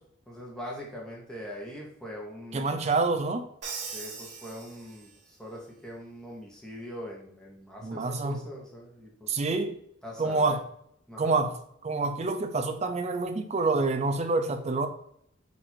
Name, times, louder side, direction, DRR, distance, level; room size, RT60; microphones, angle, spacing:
voice 1, 0.3-2.9 3.9-9.3 10.0-10.6 11.1-11.4, equal, 5° left, -2 dB, 0.8 m, -42 dB
voice 2, 2.5-3.5 7.8-8.4 9.3-9.8 10.2-10.6 11.2-11.5 11.8-14.9, right 3 dB, 35° right, 7 dB, 0.4 m, -27 dB
Crash cymbal, 3.6-5.3, right 5 dB, 55° right, 0.9 m, -40 dB
4.1 x 2.5 x 4.3 m, 0.69 s
head